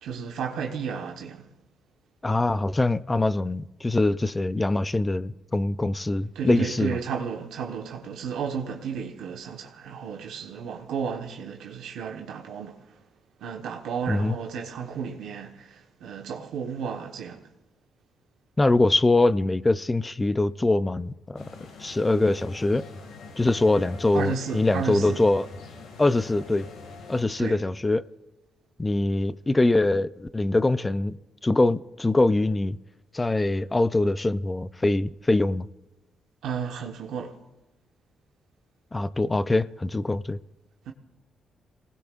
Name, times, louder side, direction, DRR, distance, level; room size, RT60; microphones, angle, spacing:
voice 1, 0.0-1.5 6.3-13.0 13.4-17.5 24.1-25.2 27.4-27.6 36.4-37.4 40.9-41.0, right 6 dB, 85° right, 1.2 m, -33 dB
voice 2, 2.2-7.0 14.1-14.4 18.6-21.4 21.8-22.9 23.4-25.5 26.0-26.7 27.1-28.1 28.8-32.8 33.1-35.7 38.9-40.4, left 2 dB, 20° left, 0.5 m, -23 dB
sound 1, 21.4-27.2, left 3 dB, 90° left, 2.2 m, -44 dB
27.5 x 19.0 x 2.5 m
cardioid pair, 85°, 0 cm